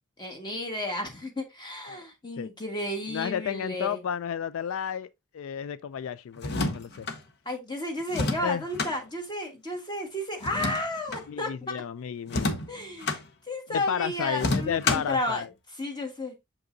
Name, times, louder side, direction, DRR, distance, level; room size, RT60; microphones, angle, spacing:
voice 1, 0.2-4.0 7.4-11.7 12.7-13.2 13.5-15.4 15.7-16.3, left 1 dB, 20° left, 1.5 m, -33 dB
voice 2, 3.1-7.1 8.4-8.6 11.3-12.6 13.7-15.5, left 8 dB, 75° left, 0.3 m, -32 dB
sound 1, 6.4-7.2 8.1-8.9 10.4-11.3 12.3-13.2 14.4-15.2, left 2 dB, 50° left, 0.9 m, -29 dB
7.2 x 5.2 x 2.6 m
head